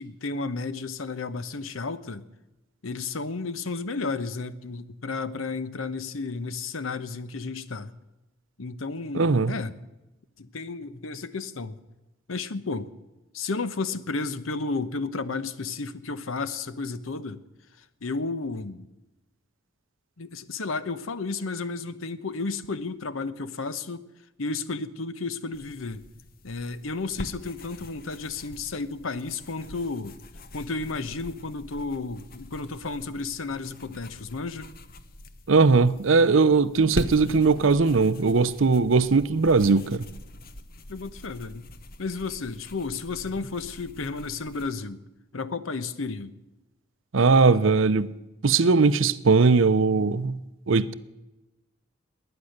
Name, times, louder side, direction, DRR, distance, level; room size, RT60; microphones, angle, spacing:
voice 1, 0.0-2.3 2.8-7.9 8.6-9.7 10.4-11.8 12.3-12.9 13.3-17.4 18.0-18.9 20.2-24.0 24.4-26.0 26.4-30.2 30.5-34.7 40.9-41.7 42.0-45.0 45.3-46.4, left 3 dB, 85° left, 0.9 m, -32 dB
voice 2, 9.1-9.5 35.5-40.0 47.1-48.1 48.4-50.4 50.7-50.9, right 4 dB, 75° right, 0.6 m, -20 dB
sound 1, 25.5-44.7, left 1 dB, 45° left, 0.9 m, -43 dB
20.5 x 9.9 x 6.6 m
head